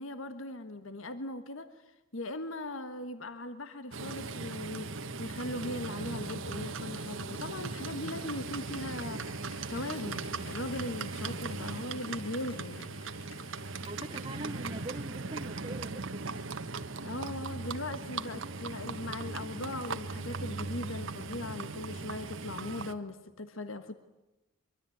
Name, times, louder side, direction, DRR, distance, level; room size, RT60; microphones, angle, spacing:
voice 1, 0.0-9.4 9.7-13.0 17.0-23.9, left 2 dB, 70° left, 10 dB, 1.5 m, -39 dB
Livestock farm animals working animals, 3.9-22.9, right 3 dB, 65° right, 1.3 m, -39 dB
Applause, 7.2-15.3 15.6-15.7, left 4 dB, 85° left, 4.3 m, -57 dB
voice 2, 13.9-16.3, right 2 dB, 25° right, 4 dB, 0.9 m, -42 dB
24.0 x 24.0 x 9.3 m, 1.0 s
head